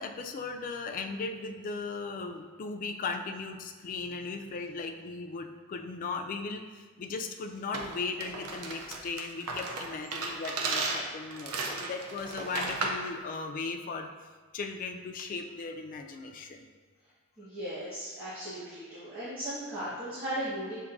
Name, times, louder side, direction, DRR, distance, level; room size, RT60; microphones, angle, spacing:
voice 1, 0.0-14.1 14.5-16.7, left 4 dB, 40° left, 4 dB, 0.3 m, -37 dB
sound 1, 7.7-13.1, right 3 dB, 85° right, 0.6 m, -35 dB
voice 2, 17.4-20.9, right 1 dB, 25° right, -13 dB, 1.4 m, -37 dB
7.0 x 2.6 x 2.5 m, 1.5 s
head